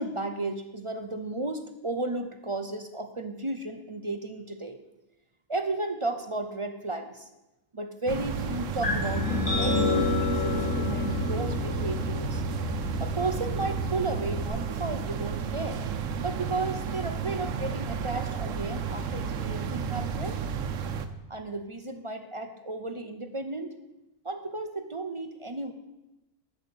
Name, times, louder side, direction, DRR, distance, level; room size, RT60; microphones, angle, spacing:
voice 1, 0.0-4.8 5.5-7.3 7.7-12.4 13.0-15.9 16.2-20.4 21.3-23.8 24.2-25.7, right 2 dB, 35° right, 7 dB, 0.5 m, -34 dB
sound 1, 8.1-21.1, right 6 dB, 75° right, 1.1 m, -32 dB
sound 2, 8.8-14.5, left 3 dB, 80° left, 3.2 m, -29 dB
8.5 x 6.6 x 8.3 m, 0.98 s
omnidirectional pair, 1.4 m